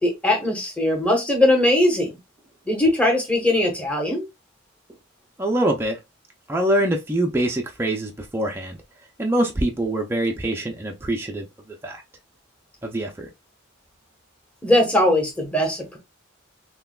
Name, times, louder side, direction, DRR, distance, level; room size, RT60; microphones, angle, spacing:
voice 1, 0.0-2.1 2.7-4.3 14.6-16.0, left 1 dB, 5° left, 1.0 m, -20 dB
voice 2, 5.4-6.0 6.5-8.8 9.2-12.0 12.8-13.3, right 1 dB, 10° right, 0.4 m, -24 dB
5.6 x 2.2 x 2.3 m
head